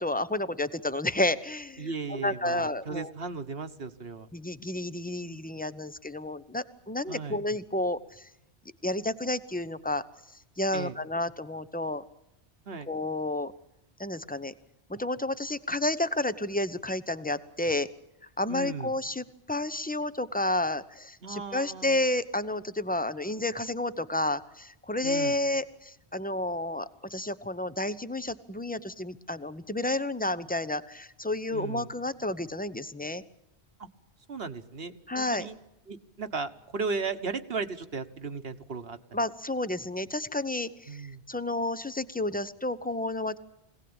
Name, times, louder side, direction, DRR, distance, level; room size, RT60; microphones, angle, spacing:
voice 1, 0.0-3.1 4.3-8.3 8.8-10.0 10.6-12.0 12.9-13.5 14.0-14.5 14.9-17.9 18.4-33.2 35.1-35.5 39.1-43.4, left 1 dB, 10° left, 14 dB, 0.7 m, -31 dB
voice 2, 1.8-4.3 7.1-7.4 10.7-11.0 12.7-12.9 18.5-18.9 21.2-22.0 25.0-25.4 31.5-31.9 33.8-33.9 34.3-35.5 35.9-39.0 40.9-41.2, right 4 dB, 65° right, 8 dB, 1.5 m, -36 dB
24.5 x 17.5 x 8.8 m, 0.84 s
omnidirectional pair, 1.1 m